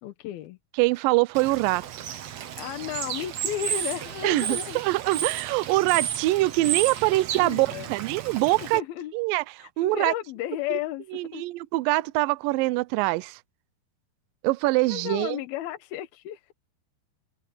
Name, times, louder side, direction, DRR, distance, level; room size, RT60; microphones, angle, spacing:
voice 1, 0.0-0.6 2.6-4.8 5.1-5.3 7.1-7.9 8.6-9.1 9.6-11.4 14.9-16.5, left 12 dB, 75° left, 2.8 m, -34 dB
voice 2, 0.8-1.8 4.2-8.8 9.1-10.1 11.1-13.4 14.4-15.4, right 20 dB, 85° right, 2.0 m, -24 dB
Bird / Water, 1.3-8.8, right 10 dB, 65° right, 1.8 m, -33 dB
open air
omnidirectional pair, 4.7 m